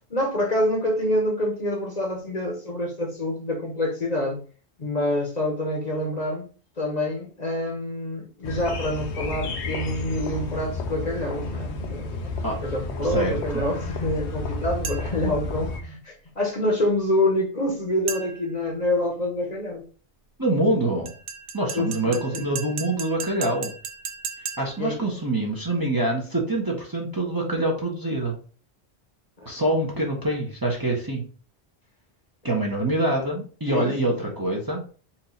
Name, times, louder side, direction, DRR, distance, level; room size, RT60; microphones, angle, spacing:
voice 1, 0.1-4.4 4.8-6.5 6.8-19.9 21.7-22.4 24.8-25.0 29.4-29.5 33.7-33.9 34.2-34.3, left 1 dB, 40° left, 0 dB, 1.0 m, -27 dB
sound 1, 8.4-15.8, left 3 dB, 80° left, 1.0 m, -31 dB
voice 2, 13.0-13.4 20.4-21.1 21.5-23.7 24.6-28.3 29.5-31.2 32.4-34.8, right 1 dB, 20° right, -2 dB, 0.9 m, -25 dB
sound 2, 14.8-15.3 18.1-18.6 21.1-24.9, right 6 dB, 85° right, 0.9 m, -36 dB
4.4 x 2.6 x 3.9 m, 0.39 s
omnidirectional pair, 1.1 m